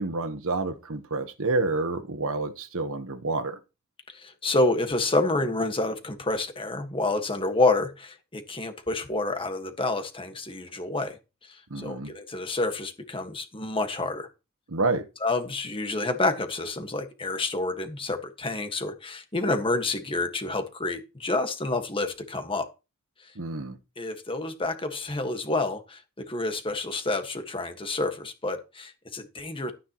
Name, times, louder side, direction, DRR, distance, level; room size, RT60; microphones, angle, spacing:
voice 1, 0.0-3.6 11.7-12.1 14.7-15.1 23.3-23.8, right 3 dB, 65° right, 1.3 m, -29 dB
voice 2, 4.1-14.3 15.2-22.7 23.2-23.3 24.0-29.7, left 2 dB, 25° left, 1.7 m, -28 dB
13.0 x 9.7 x 3.1 m
head